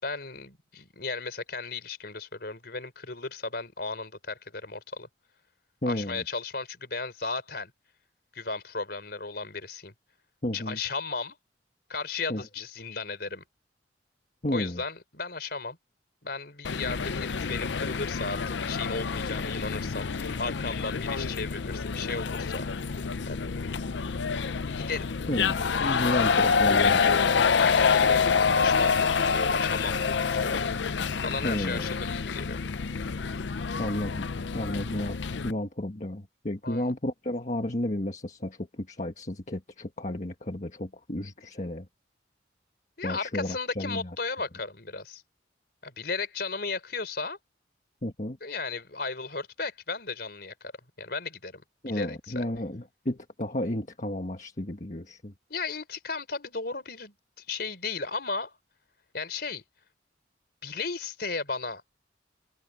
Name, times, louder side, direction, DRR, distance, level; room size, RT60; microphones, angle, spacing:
voice 1, 0.0-5.1 5.9-7.7 8.3-9.9 10.5-11.3 11.9-13.4 14.5-15.8 16.2-23.5 24.7-25.1 26.0-26.4 27.5-30.6 31.2-32.6 36.6-36.9 43.0-45.2 45.8-47.4 48.4-50.7 51.0-52.4 55.5-58.5 59.1-59.6 60.6-61.8, left 4 dB, 55° left, 4.8 m, -35 dB
voice 2, 5.8-6.2 10.4-10.8 12.3-12.4 14.4-14.8 25.3-27.5 31.4-31.9 33.8-34.3 34.5-41.9 43.0-44.1 48.0-48.4 51.8-55.3, left 1 dB, 40° left, 1.6 m, -32 dB
sound 1, 16.6-35.5, left 5 dB, 75° left, 0.6 m, -27 dB
head